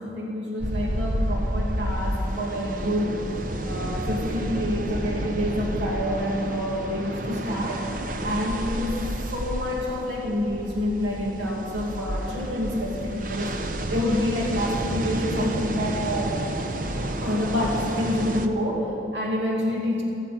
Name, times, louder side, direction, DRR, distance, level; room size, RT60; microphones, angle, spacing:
voice 1, 0.0-3.3 3.6-8.0 8.2-9.0 9.3-13.6 13.9-16.4 17.2-20.0, left 1 dB, 80° right, -3 dB, 2.6 m, -27 dB
sound 1, 0.6-18.5, right 1 dB, 45° right, 0.9 m, -30 dB
16.0 x 14.5 x 5.9 m, 3.0 s
head